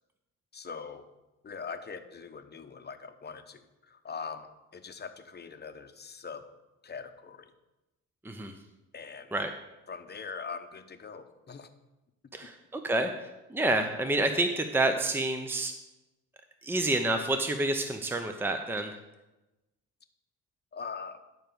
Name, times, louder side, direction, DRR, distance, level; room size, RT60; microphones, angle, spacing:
voice 1, 0.5-1.1 1.4-6.5 6.8-7.5 8.9-9.3 9.9-11.7 20.7-21.2, left 5 dB, 35° left, 8 dB, 1.0 m, -42 dB
voice 2, 8.2-8.6 9.3-9.5 12.3-15.7 16.6-18.9, right 2 dB, 5° right, 6 dB, 0.8 m, -29 dB
11.5 x 4.6 x 7.0 m, 1.0 s
cardioid pair, 90°, 30 cm